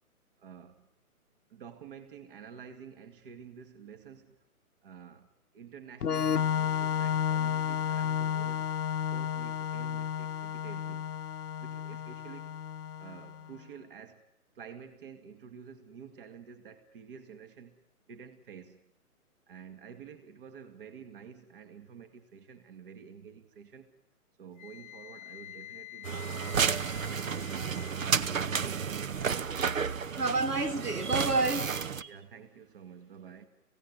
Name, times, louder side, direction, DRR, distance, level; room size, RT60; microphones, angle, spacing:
voice 1, 0.4-0.9 1.5-4.4 4.8-5.3 5.5-8.7 9.0-11.1 11.6-12.6 13.0-14.3 14.5-17.8 18.1-18.9 19.5-23.9 24.4-26.5 26.9-29.5 30.2-30.4 32.1-33.5, right 7 dB, 35° right, 2.1 m, -50 dB
Organ, 6.0-13.5, left 8 dB, 85° left, 0.8 m, -32 dB
Wind instrument woodwind instrument, 24.6-28.1, left 15 dB, 30° left, 0.9 m, -47 dB
sound 1, 26.0-32.0, right 6 dB, 60° right, 1.0 m, -31 dB
voice 2, 30.0-32.1, right 3 dB, 90° right, 2.7 m, -30 dB
26.5 x 17.0 x 9.8 m
figure-of-eight pair, 145°, 45 cm